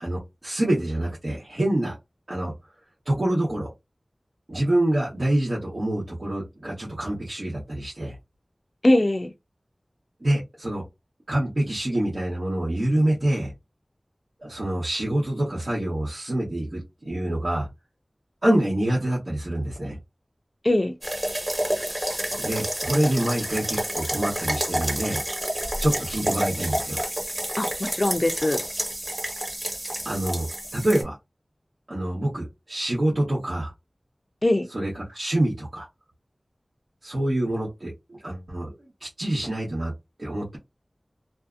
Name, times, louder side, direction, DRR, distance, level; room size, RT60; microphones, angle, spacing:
voice 1, 0.0-1.9 2.3-2.5 3.1-3.7 4.5-8.2 10.2-10.9 11.3-13.5 14.4-17.7 18.4-20.0 22.4-25.2 25.8-27.0 30.0-31.2 31.9-33.7 34.7-35.9 37.0-39.9 40.2-40.6, right 1 dB, 65° right, 1.0 m, -26 dB
voice 2, 8.8-9.3 20.6-20.9 27.6-28.6 34.4-34.7, left 1 dB, 45° left, 0.5 m, -21 dB
sound 1, 21.0-31.0, right 1 dB, 35° right, 1.2 m, -29 dB
2.6 x 2.4 x 2.4 m
wide cardioid pair, 45°, 0 cm